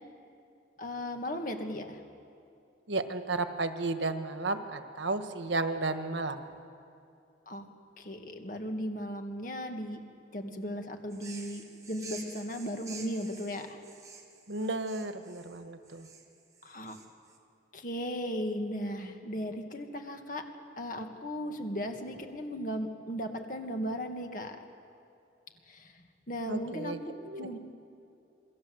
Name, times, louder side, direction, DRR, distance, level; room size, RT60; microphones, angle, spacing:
voice 1, 0.8-2.0 7.5-7.6 8.0-10.0 10.3-13.8 16.6-17.0 17.7-20.4 20.8-24.6 25.7-26.9 27.4-27.6, equal, 45° left, 4 dB, 2.1 m, -36 dB
voice 2, 2.9-6.5 14.5-16.1 26.4-27.5, right 2 dB, 90° right, 8 dB, 1.5 m, -33 dB
sound 1, 11.1-17.4, right 5 dB, 20° right, 2.0 m, -49 dB
27.5 x 21.5 x 8.0 m, 2.6 s
head